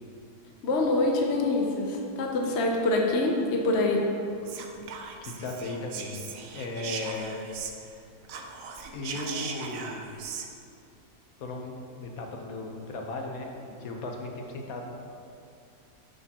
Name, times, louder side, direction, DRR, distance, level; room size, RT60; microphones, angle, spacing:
voice 1, 0.6-4.0, left 2 dB, 55° left, 1 dB, 0.9 m, -25 dB
Whispering, 4.4-8.0 8.2-10.5, right 6 dB, 75° right, 1.0 m, -39 dB
voice 2, 5.4-6.3 6.5-7.5 8.9-10.1 11.4-14.8, left 2 dB, 75° left, 1 dB, 1.3 m, -36 dB
8.8 x 6.5 x 2.9 m, 2.5 s
omnidirectional pair, 1.5 m